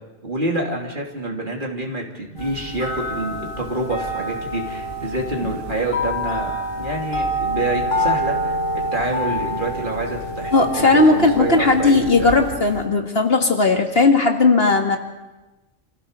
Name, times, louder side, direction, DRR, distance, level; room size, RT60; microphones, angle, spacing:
voice 1, 0.2-6.5 6.8-12.3, right 2 dB, 40° right, 0 dB, 3.3 m, -27 dB
sound 1, 2.4-12.8, equal, 75° left, 5.2 m, -27 dB
voice 2, 10.5-15.0, left 3 dB, 50° left, 4 dB, 1.9 m, -17 dB
27.5 x 16.0 x 6.7 m, 1.1 s
omnidirectional pair, 1.3 m